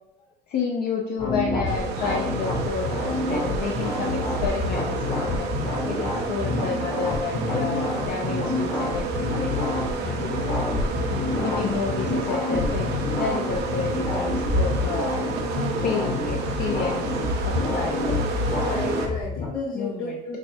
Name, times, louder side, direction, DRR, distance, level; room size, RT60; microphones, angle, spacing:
voice 1, 0.5-2.9 3.3-5.5 5.9-9.7 10.0-10.3 11.1-15.1 15.8-17.1 17.4-18.0 19.8-20.1, left 5 dB, 65° left, 0 dB, 0.5 m, -30 dB
sound 1, 1.2-19.5, left 2 dB, 30° left, 0.8 m, -27 dB
sound 2, 1.7-19.1, right 4 dB, 80° right, 0.7 m, -31 dB
Musical instrument, 2.2-12.3, right 6 dB, 30° right, 0.5 m, -43 dB
voice 2, 6.3-6.6 11.2-11.8 16.0-16.2 16.5-16.9 18.5-20.4, left 3 dB, 85° left, -7 dB, 1.0 m, -34 dB
6.1 x 2.2 x 2.7 m, 0.85 s
cardioid pair, 110°, 17 cm